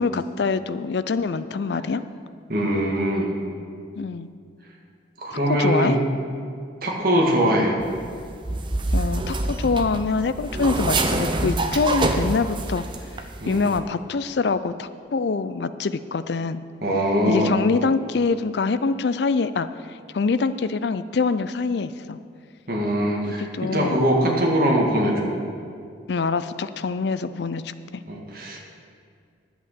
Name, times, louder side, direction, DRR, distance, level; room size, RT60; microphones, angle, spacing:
voice 1, 0.0-2.0 4.0-4.3 5.3-6.0 8.9-12.8 13.5-16.6 17.3-19.7 20.1-22.2 23.3-24.4 26.1-28.0, left 4 dB, 65° left, 13 dB, 0.4 m, -25 dB
voice 2, 2.5-3.3 5.2-5.9 6.8-7.7 13.4-13.6 16.8-17.5 22.7-25.3 28.1-28.6, equal, 50° right, -2 dB, 2.0 m, -22 dB
sound 1, 7.8-13.2 13.5-13.8, right 2 dB, 25° right, 0.6 m, -26 dB
11.0 x 8.0 x 6.7 m, 2.3 s
head